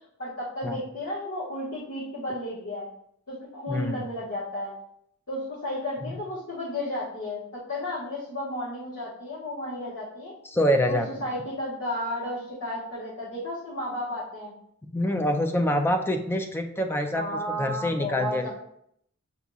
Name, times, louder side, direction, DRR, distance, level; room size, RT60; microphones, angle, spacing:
voice 1, 0.2-2.9 3.3-4.7 5.3-10.3 10.8-14.5 17.1-18.5, left 1 dB, 65° left, -10 dB, 1.5 m, -33 dB
voice 2, 3.7-4.1 6.0-6.1 10.5-11.1 14.9-17.3 17.6-18.5, equal, 10° left, 5 dB, 0.4 m, -25 dB
7.0 x 2.8 x 2.3 m, 0.70 s
head